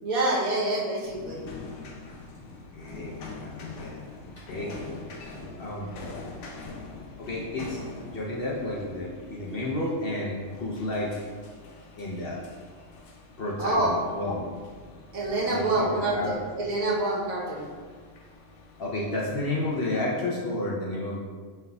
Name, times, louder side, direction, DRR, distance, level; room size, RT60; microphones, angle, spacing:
voice 1, 0.0-1.5 13.6-14.0 15.1-17.7, right 2 dB, 75° right, -4 dB, 1.4 m, -27 dB
sound 1, 1.0-19.9, left 3 dB, 80° left, 1.1 m, -45 dB
voice 2, 2.5-4.7 5.6-5.9 7.2-7.8 8.1-11.1 12.0-12.4 13.4-14.4 15.4-16.3 18.8-21.2, left 1 dB, 55° left, -4 dB, 0.7 m, -31 dB
5.6 x 3.3 x 2.3 m, 1.5 s
omnidirectional pair, 1.4 m